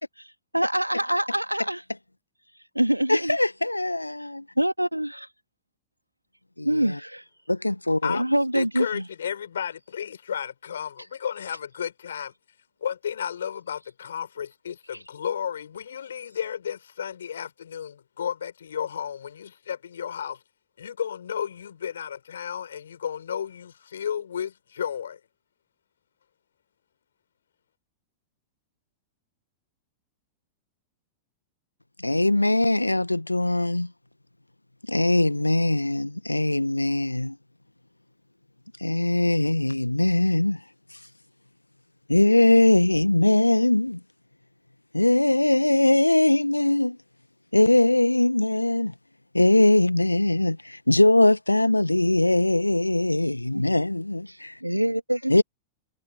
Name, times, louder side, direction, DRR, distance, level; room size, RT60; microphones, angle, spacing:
voice 1, 0.5-1.8 2.7-3.4 4.6-5.3 6.6-7.2 8.1-9.0 53.5-53.6 54.3-55.3, right 1 dB, 90° right, 2.4 m, -25 dB
voice 2, 3.1-4.4 6.6-7.0 7.5-8.2 32.0-33.9 34.9-37.4 38.8-40.6 42.1-44.0 44.9-47.0 47.5-48.9 49.3-54.6 55.3-55.4, left 1 dB, 85° left, 1.4 m, -21 dB
voice 3, 8.0-12.3 12.8-20.4 20.8-25.2, left 8 dB, 65° left, 5.3 m, -33 dB
figure-of-eight pair, 95°, 0 cm